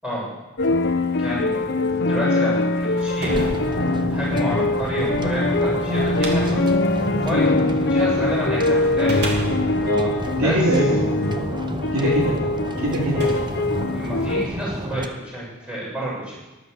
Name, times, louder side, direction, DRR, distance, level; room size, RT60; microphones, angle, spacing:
voice 1, 0.0-0.3 1.2-3.5 4.1-6.6 6.9-9.4 10.3-10.6 12.0-12.2 13.9-16.3, equal, 5° right, -6 dB, 7.1 m, -30 dB
sound 1, 0.6-14.4, left 2 dB, 55° left, 1.0 m, -22 dB
sound 2, 2.5-8.1 8.7-11.2 12.0-12.1 12.8-14.5, right 1 dB, 50° right, 2.7 m, -35 dB
sound 3, 3.3-15.1, right 1 dB, 20° right, 0.9 m, -31 dB
voice 2, 10.4-11.1 11.9-12.4 12.8-13.3, right 1 dB, 85° right, -3 dB, 3.6 m, -22 dB
13.5 x 12.0 x 6.7 m, 1.1 s
head